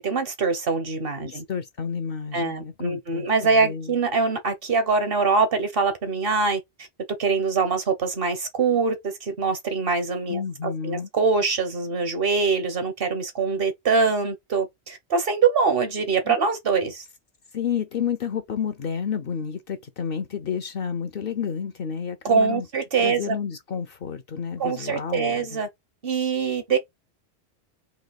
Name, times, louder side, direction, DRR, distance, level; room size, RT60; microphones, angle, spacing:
voice 1, 0.0-1.4 2.3-6.6 7.2-17.0 22.2-23.4 24.6-25.7 26.0-26.8, right 4 dB, 60° right, 1.3 m, -23 dB
voice 2, 1.2-4.0 10.3-11.1 16.3-16.4 17.5-22.7 23.0-25.6, left 7 dB, 60° left, 0.9 m, -30 dB
4.0 x 2.8 x 4.1 m
omnidirectional pair, 1.1 m